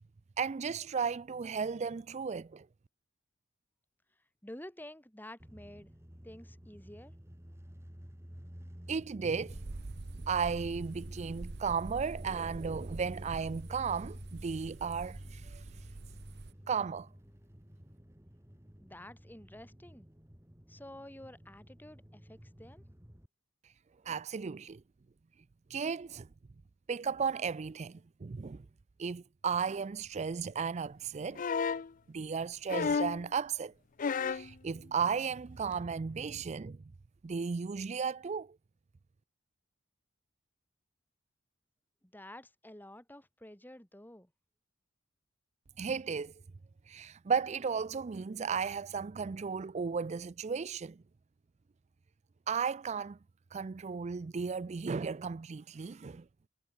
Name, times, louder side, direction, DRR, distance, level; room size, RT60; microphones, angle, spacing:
voice 1, 0.4-2.7 8.9-9.6 10.3-15.6 16.7-17.1 24.0-24.8 25.7-26.3 26.9-28.6 29.0-31.4 32.1-33.7 34.2-36.8 37.2-38.5 45.8-46.3 46.9-51.0 52.5-53.2 53.5-56.2, right 6 dB, 35° right, 0.4 m, -35 dB
voice 2, 4.4-5.9 6.2-7.1 18.8-20.1 20.7-22.8 42.0-44.3, left 1 dB, 10° left, 3.4 m, -50 dB
sound 1, 5.4-23.3, equal, 15° right, 2.3 m, -50 dB
sound 2, 9.5-16.5, right 3 dB, 55° right, 0.8 m, -46 dB
sound 3, 31.3-31.9 32.7-33.2 34.0-34.5 35.7-35.8, left 5 dB, 45° left, 0.5 m, -31 dB
head